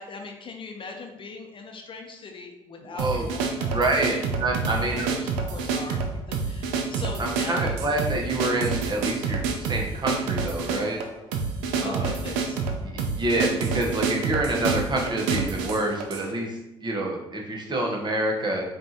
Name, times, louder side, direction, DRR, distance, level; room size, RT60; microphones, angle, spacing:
voice 1, 0.0-4.3 4.7-8.0 11.8-12.6, left 4 dB, 40° left, 3 dB, 0.7 m, -40 dB
voice 2, 2.9-3.3 3.7-5.1 7.2-11.0 11.8-12.1 12.8-18.6, right 1 dB, 35° right, 0 dB, 1.1 m, -27 dB
sound 1, 3.0-16.3, right 5 dB, 80° right, 0.5 m, -28 dB
5.2 x 2.6 x 2.8 m, 0.91 s
hypercardioid pair, 60°, 13 cm